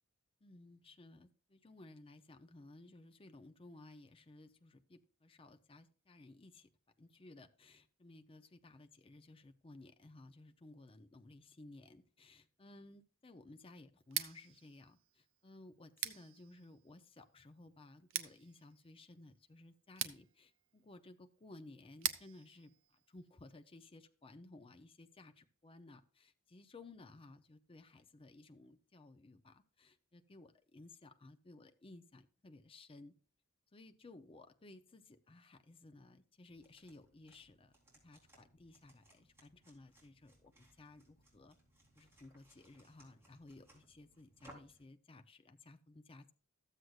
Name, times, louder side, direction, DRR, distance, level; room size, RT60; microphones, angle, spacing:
voice 1, 0.4-6.7 7.0-33.1 33.7-37.7 38.0-41.6 42.0-46.3, left 2 dB, 25° left, 7 dB, 0.6 m, -58 dB
Scissors, 14.0-23.8, right 11 dB, 70° right, 0.8 m, -46 dB
sound 1, 36.5-44.8, right 1 dB, 10° right, 3.6 m, -65 dB
14.0 x 7.8 x 2.4 m, 0.39 s
head